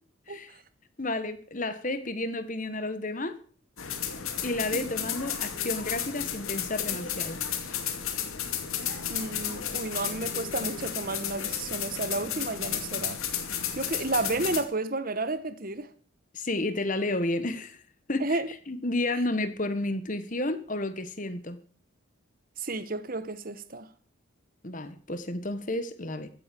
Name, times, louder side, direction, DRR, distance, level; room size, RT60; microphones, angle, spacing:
voice 1, 1.0-3.4 4.4-7.8 16.3-17.8 18.1-21.6 24.6-26.3, left 2 dB, 40° left, 1.5 m, -31 dB
sound 1, 3.8-14.6, left 8 dB, 85° left, 2.5 m, -33 dB
voice 2, 9.1-13.2 13.7-15.9 18.2-18.5 22.6-23.9, right 2 dB, 45° right, 1.2 m, -32 dB
15.0 x 8.4 x 7.6 m
head